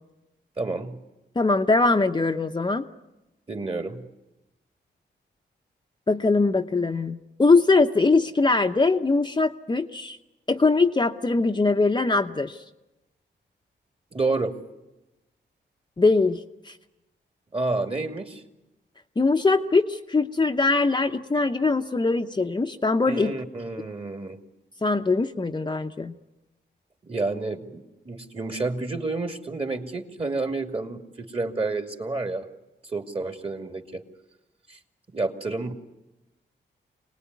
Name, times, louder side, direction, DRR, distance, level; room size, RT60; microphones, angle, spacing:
voice 1, 0.6-1.0 3.5-4.1 14.1-14.6 17.5-18.4 23.1-24.4 27.1-32.5 32.9-34.0 34.7-34.8 35.1-35.7, right 3 dB, 30° right, 5 dB, 2.5 m, -29 dB
voice 2, 1.4-2.9 6.1-10.2 10.5-12.6 16.0-16.4 16.7-16.8 19.2-23.4 24.8-26.1, left 3 dB, 25° left, 4 dB, 0.9 m, -22 dB
25.5 x 19.0 x 9.5 m, 1.0 s
cardioid pair, 80°, 19 cm